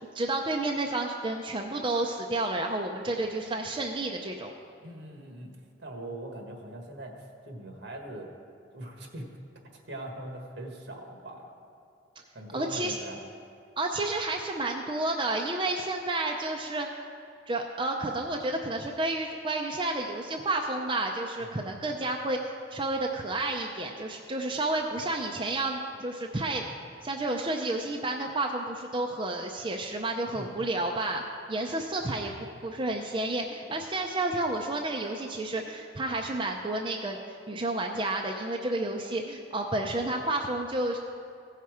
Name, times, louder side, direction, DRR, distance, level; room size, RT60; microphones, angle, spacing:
voice 1, 0.1-4.5 12.5-13.0 13.8-16.9 17.5-22.4 22.7-26.6 27.0-31.2 31.5-32.3 32.6-37.2 37.5-41.0, right 2 dB, 25° right, 1 dB, 0.5 m, -30 dB
voice 2, 4.8-5.5 5.8-8.3 8.7-9.3 9.9-11.4 12.3-13.2 21.4-21.7 30.3-30.5, right 1 dB, 70° right, 2 dB, 1.5 m, -41 dB
15.5 x 5.7 x 4.8 m, 2.5 s
head